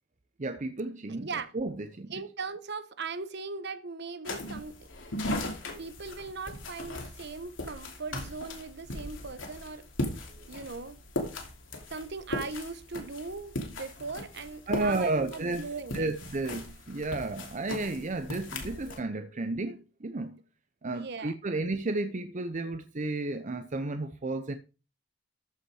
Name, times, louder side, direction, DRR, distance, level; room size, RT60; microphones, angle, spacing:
voice 1, 0.4-1.3 1.5-2.1 10.4-10.5 14.7-15.6 15.9-20.4 20.8-24.5, right 2 dB, 40° right, 0.7 m, -32 dB
voice 2, 1.1-1.5 2.1-4.8 5.8-9.9 10.5-11.0 11.9-16.1 20.9-21.3, right 4 dB, 60° right, 1.1 m, -39 dB
sound 1, 4.3-19.0, left 1 dB, 85° left, 2.7 m, -38 dB
14.0 x 5.8 x 4.8 m
head